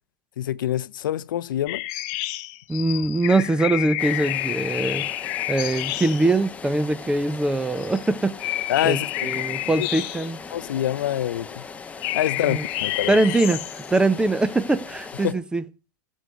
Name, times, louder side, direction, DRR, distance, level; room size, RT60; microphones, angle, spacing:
voice 1, 0.4-1.8 8.7-9.5 9.8-9.9 10.5-11.6 12.1-13.2 15.2-15.4, left 12 dB, 75° left, 0.5 m, -26 dB
sound 1, 1.7-6.3 7.8-8.1 8.4-10.6 12.0-13.9, left 17 dB, 45° left, 0.9 m, -29 dB
voice 2, 2.7-5.2 5.5-10.4 12.4-12.6 13.1-15.6, right 2 dB, 5° right, 0.7 m, -23 dB
sound 2, 4.0-15.3, left 5 dB, 15° left, 1.0 m, -39 dB
12.5 x 6.4 x 6.7 m
hypercardioid pair, 125°, 11 cm